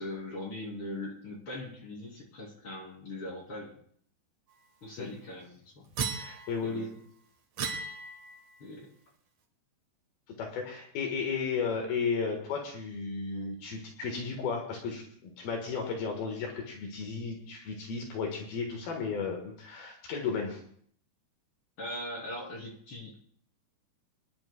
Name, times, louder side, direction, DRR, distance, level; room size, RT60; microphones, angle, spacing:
voice 1, 0.0-3.8 4.8-5.8 6.6-7.0 8.6-8.9 21.8-23.2, left 1 dB, 35° left, -3 dB, 3.3 m, -40 dB
sound 1, 6.0-6.8 7.6-8.5, right 5 dB, 60° right, 1.9 m, -36 dB
voice 2, 6.2-6.9 10.4-20.6, left 5 dB, 70° left, 2 dB, 3.2 m, -34 dB
25.5 x 10.5 x 2.3 m, 0.62 s
omnidirectional pair, 4.7 m